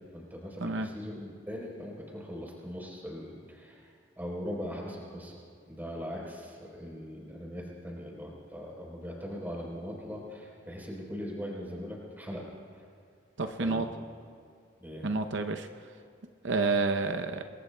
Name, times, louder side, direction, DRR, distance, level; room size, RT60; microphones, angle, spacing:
voice 1, 0.0-3.9 4.2-5.3 5.7-12.8 13.6-13.9 14.8-15.0, equal, 10° right, -3 dB, 3.8 m, -40 dB
voice 2, 13.4-13.9 15.0-15.7 16.4-17.4, right 3 dB, 65° right, 7 dB, 0.7 m, -29 dB
28.0 x 21.5 x 2.3 m, 2.3 s
head